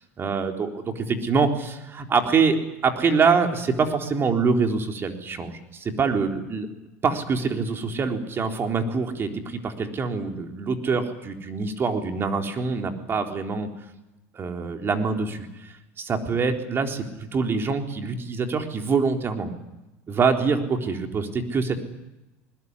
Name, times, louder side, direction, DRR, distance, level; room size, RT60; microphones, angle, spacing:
voice 1, 0.2-2.6 2.8-6.7 7.0-13.7 14.3-19.5 20.1-21.8, right 5 dB, 35° right, 4 dB, 3.9 m, -25 dB
21.0 x 20.5 x 9.8 m, 0.98 s
supercardioid pair, 100°, 7 cm